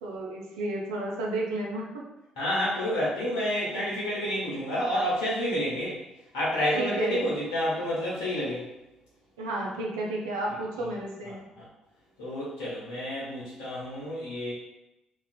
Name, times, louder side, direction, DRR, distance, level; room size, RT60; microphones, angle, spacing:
voice 1, 0.0-2.0 3.7-3.8 6.8-7.2 9.4-11.4, right 2 dB, 70° right, -2 dB, 0.4 m, -32 dB
voice 2, 2.4-6.0 6.3-8.6 10.8-10.9 11.2-11.6 12.2-14.5, equal, 70° left, -8 dB, 0.7 m, -29 dB
2.4 x 2.3 x 2.2 m, 0.93 s
figure-of-eight pair, 45°, 3 cm